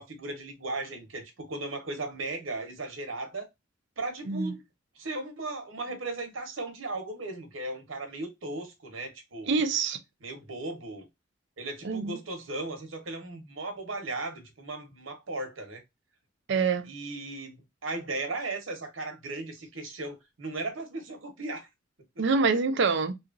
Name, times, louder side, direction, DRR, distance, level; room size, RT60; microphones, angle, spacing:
voice 1, 0.0-3.5 4.0-4.6 5.0-9.6 10.2-11.1 11.6-15.8 16.8-21.7, right 2 dB, 85° right, 1.0 m, -36 dB
voice 2, 9.5-10.0 11.8-12.2 16.5-16.9 22.2-23.1, right 4 dB, 65° right, 0.5 m, -25 dB
2.8 x 2.4 x 2.4 m
head